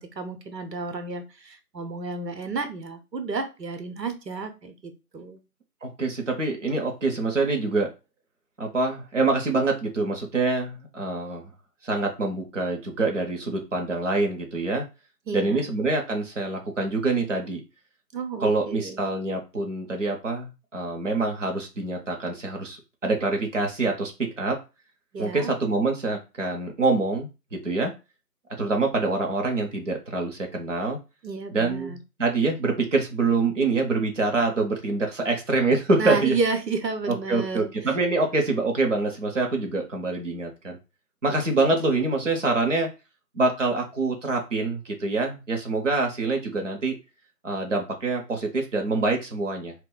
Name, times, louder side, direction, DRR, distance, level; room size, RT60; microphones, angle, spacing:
voice 1, 0.0-5.4 15.3-15.6 18.1-19.0 25.1-25.5 31.2-32.0 36.0-37.9, right 4 dB, 90° right, 7 dB, 0.9 m, -31 dB
voice 2, 5.8-7.9 8.6-11.5 11.8-14.8 15.3-17.6 18.4-24.6 25.2-27.9 28.6-31.0 31.5-36.4 37.1-40.8 41.2-42.9 43.3-47.0 47.4-49.7, right 3 dB, 50° right, 2 dB, 0.7 m, -25 dB
2.3 x 2.2 x 3.7 m, 0.28 s
figure-of-eight pair, 170°, 48 cm